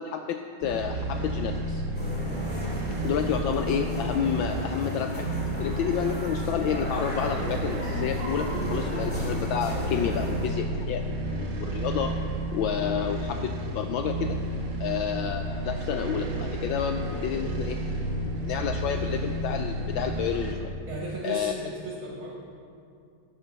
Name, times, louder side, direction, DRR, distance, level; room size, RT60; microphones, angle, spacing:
voice 1, 0.0-1.8 3.0-12.1 12.5-14.4 14.8-20.7 21.2-21.5, left 8 dB, 75° left, 6 dB, 1.2 m, -30 dB
sound 1, 0.6-20.5, right 1 dB, 45° right, 1.5 m, -31 dB
sound 2, 1.9-10.5, equal, 5° left, 2.2 m, -35 dB
voice 2, 20.9-22.3, right 1 dB, 70° right, -4 dB, 2.4 m, -35 dB
12.0 x 8.6 x 6.6 m, 2.4 s
omnidirectional pair, 2.3 m